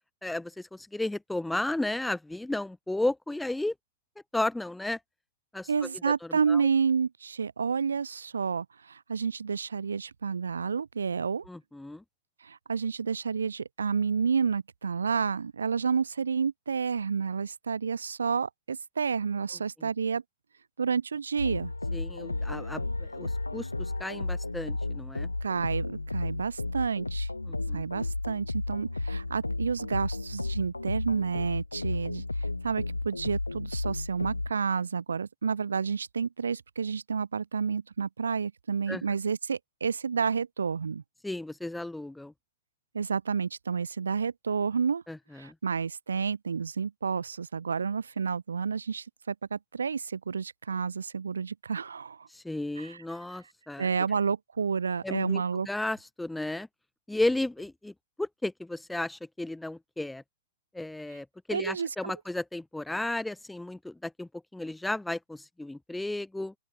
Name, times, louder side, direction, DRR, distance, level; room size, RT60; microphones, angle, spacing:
voice 1, 0.2-3.7 4.3-5.0 5.5-6.6 11.5-12.0 19.8-19.9 21.9-25.3 27.5-27.8 38.9-39.0 41.2-42.3 45.1-45.5 52.3-53.9 55.0-56.7 57.1-60.2 60.7-66.5, left 2 dB, 5° left, 0.9 m, -34 dB
voice 2, 5.7-11.4 12.4-20.2 20.8-21.7 25.4-27.3 27.7-41.0 42.9-45.0 45.4-52.3 52.8-53.0 53.8-55.7 61.5-62.1, right 6 dB, 75° right, 1.0 m, -30 dB
sound 1, 21.4-34.5, left 2 dB, 90° left, 2.6 m, -33 dB
open air
figure-of-eight pair, 105°, 0 cm